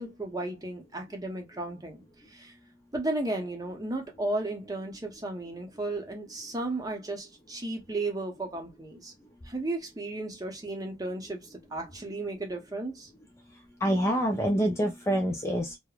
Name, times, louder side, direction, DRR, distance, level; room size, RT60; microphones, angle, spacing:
voice 1, 0.0-2.0 2.3-2.5 2.9-9.1 9.4-13.1, right 2 dB, 20° right, 0.7 m, -34 dB
voice 2, 13.8-15.8, equal, 15° left, 0.4 m, -26 dB
3.2 x 2.0 x 2.3 m
head